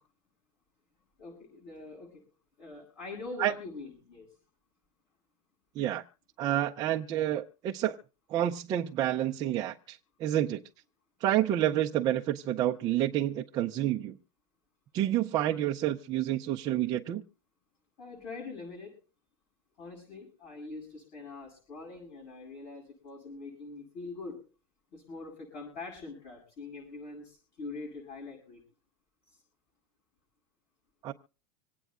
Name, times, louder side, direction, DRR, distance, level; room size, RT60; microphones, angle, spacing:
voice 1, 1.2-2.2 2.6-4.3 18.0-19.0 19.8-24.4 24.9-28.6 29.3-29.4, left 3 dB, 40° left, -6 dB, 7.9 m, -43 dB
voice 2, 6.4-8.0 8.3-10.6 11.2-14.1 14.9-17.2 31.0-31.1, right 12 dB, 25° right, 0 dB, 0.5 m, -29 dB
26.0 x 9.1 x 2.4 m, 0.37 s
supercardioid pair, 170°, 17 cm